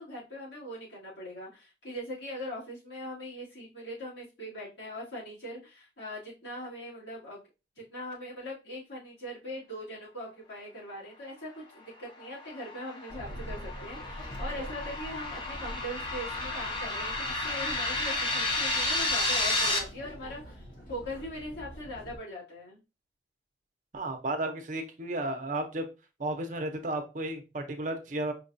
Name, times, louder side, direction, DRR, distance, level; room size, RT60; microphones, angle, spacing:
voice 1, 0.0-7.4 7.8-22.8, equal, 75° left, -7 dB, 2.0 m, -41 dB
sound 1, 12.1-19.8, left 2 dB, 30° left, 0.6 m, -32 dB
sound 2, 13.1-22.2, equal, 50° left, 0.9 m, -44 dB
voice 2, 23.9-25.9 26.2-28.3, right 2 dB, 45° right, 6 dB, 0.6 m, -33 dB
5.1 x 2.3 x 2.6 m, 0.29 s
head